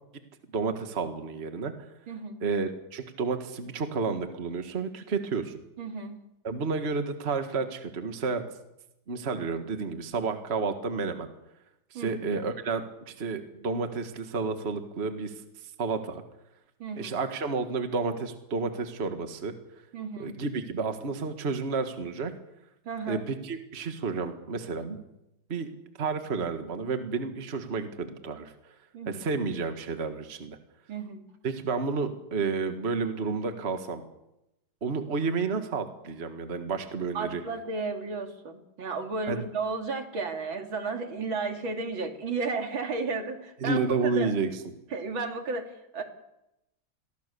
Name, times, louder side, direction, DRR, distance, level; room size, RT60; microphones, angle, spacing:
voice 1, 0.5-1.7 2.4-5.6 6.4-8.4 9.1-11.3 11.9-15.3 15.8-16.2 17.0-19.5 20.2-22.3 23.1-25.0 25.5-25.7 26.0-28.5 29.1-30.6 31.4-34.0 34.8-37.4 39.3-39.5 43.6-44.6, right 4 dB, 30° right, 7 dB, 1.8 m, -31 dB
voice 2, 2.1-2.4 5.8-6.2 11.9-12.2 16.8-17.1 19.9-20.3 22.8-23.2 28.9-29.2 30.9-31.2 37.1-43.8 44.1-44.3 44.9-46.0, right 4 dB, 65° right, 5 dB, 3.2 m, -33 dB
28.0 x 22.0 x 6.9 m, 0.88 s
omnidirectional pair, 2.3 m